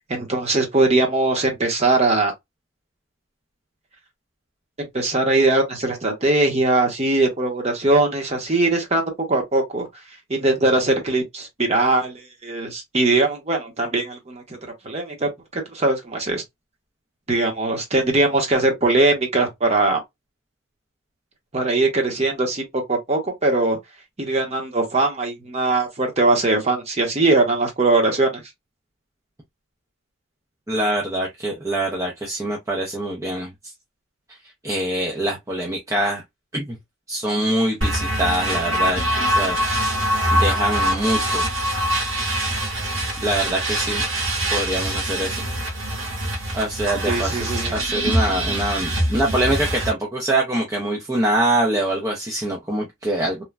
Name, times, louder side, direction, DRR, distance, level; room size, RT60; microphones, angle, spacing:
voice 1, 0.1-2.3 4.8-9.9 10.3-14.6 14.8-16.4 17.3-20.0 21.5-23.8 24.2-28.4 47.1-47.7, right 2 dB, 30° right, 0.9 m, -21 dB
voice 2, 30.7-33.7 34.6-36.2 36.5-36.8 37.1-39.6 40.3-41.4 43.2-44.0 44.5-45.4 46.5-53.4, right 1 dB, 15° right, 0.5 m, -24 dB
sound 1, 37.8-49.9, right 1 dB, 60° right, 1.4 m, -23 dB
3.1 x 2.2 x 2.3 m
head